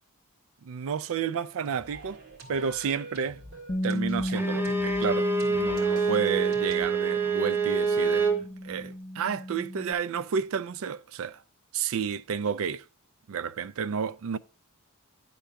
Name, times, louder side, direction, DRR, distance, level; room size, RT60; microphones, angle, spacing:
voice 1, 0.6-2.2 2.5-3.4 3.8-8.3 8.6-11.4 11.7-12.9 13.3-14.4, right 6 dB, 65° right, 0.4 m, -31 dB
sound 1, 1.7-6.9, right 2 dB, 45° right, 2.0 m, -46 dB
Bass guitar, 3.7-9.9, equal, 25° left, 0.5 m, -34 dB
Bowed string instrument, 4.3-8.4, right 4 dB, 10° right, 0.8 m, -26 dB
10.0 x 3.9 x 5.7 m
head